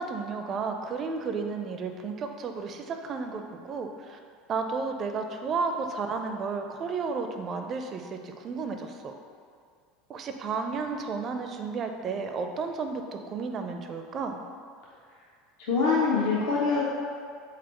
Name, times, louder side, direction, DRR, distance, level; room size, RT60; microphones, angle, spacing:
voice 1, 0.0-4.2 4.5-9.1 10.1-14.4, right 4 dB, 40° right, 5 dB, 0.4 m, -32 dB
voice 2, 15.6-16.8, left 4 dB, 60° left, -6 dB, 0.6 m, -24 dB
4.2 x 4.1 x 3.0 m, 2.2 s
figure-of-eight pair, 75°, 0 cm